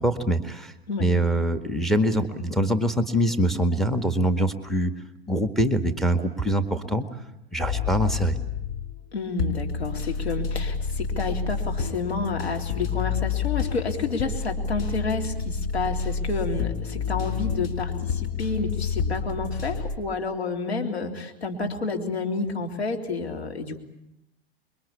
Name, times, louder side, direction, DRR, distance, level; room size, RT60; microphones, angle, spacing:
voice 1, 0.0-0.7 1.0-4.9 5.3-7.0 7.5-8.4, right 1 dB, ahead, 8 dB, 1.9 m, -24 dB
sound 1, 7.6-9.0 9.4-20.0, left 6 dB, 55° left, 4.4 m, -29 dB
voice 2, 9.1-23.8, left 3 dB, 90° left, 3 dB, 3.5 m, -30 dB
26.5 x 23.0 x 8.6 m, 0.83 s
hypercardioid pair, 95°, 31 cm